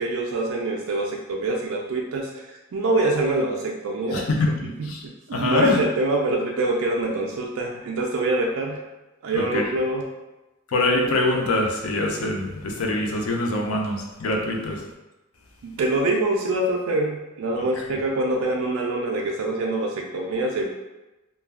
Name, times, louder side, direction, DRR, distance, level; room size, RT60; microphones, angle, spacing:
voice 1, 0.0-4.3 4.6-4.9 5.3-8.8 9.2-10.1 15.6-20.7, right 2 dB, 70° right, 0 dB, 0.3 m, -25 dB
voice 2, 4.1-5.0 5.3-5.8 9.3-9.6 10.7-14.8, left 2 dB, 80° left, 1 dB, 0.5 m, -24 dB
2.2 x 2.2 x 3.3 m, 1.0 s
head